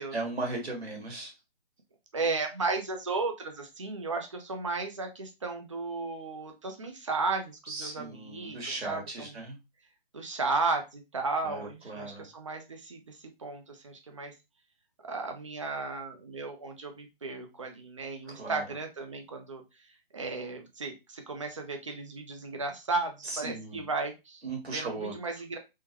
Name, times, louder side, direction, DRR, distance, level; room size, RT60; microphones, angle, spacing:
voice 1, 0.1-1.3 7.7-9.6 11.4-12.3 18.2-18.6 23.2-23.9 24.4-25.2, right 2 dB, 85° right, 1 dB, 1.7 m, -37 dB
voice 2, 2.1-8.6 8.8-9.4 10.1-14.3 15.0-19.6 20.1-24.4 24.7-25.6, right 3 dB, 30° right, 4 dB, 0.5 m, -34 dB
3.7 x 2.1 x 2.9 m, 0.25 s
hypercardioid pair, 160°, 31 cm